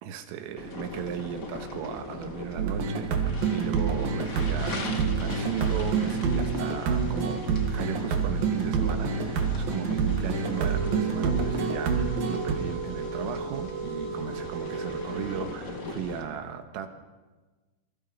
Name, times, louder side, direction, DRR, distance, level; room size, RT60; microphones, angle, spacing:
voice 1, 0.0-16.9, right 9 dB, 85° right, 7 dB, 4.2 m, -36 dB
sound 1, 0.6-16.2, left 3 dB, 70° left, 0.8 m, -40 dB
sound 2, 2.6-12.6, right 5 dB, 55° right, 3.2 m, -27 dB
sound 3, 10.4-15.4, right 4 dB, 20° right, 5.7 m, -35 dB
27.5 x 24.5 x 5.7 m, 1.3 s
omnidirectional pair, 5.8 m